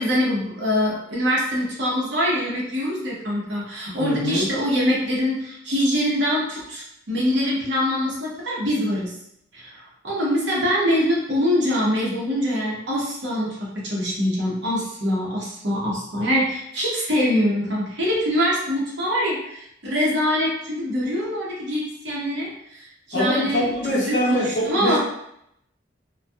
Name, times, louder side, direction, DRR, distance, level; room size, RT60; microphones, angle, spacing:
voice 1, 0.0-9.1 9.5-23.6 24.0-25.0, equal, 65° right, -4 dB, 0.8 m, -24 dB
voice 2, 4.0-4.5 23.1-25.0, left 1 dB, 60° left, -6 dB, 0.6 m, -23 dB
2.6 x 2.3 x 2.3 m, 0.75 s
head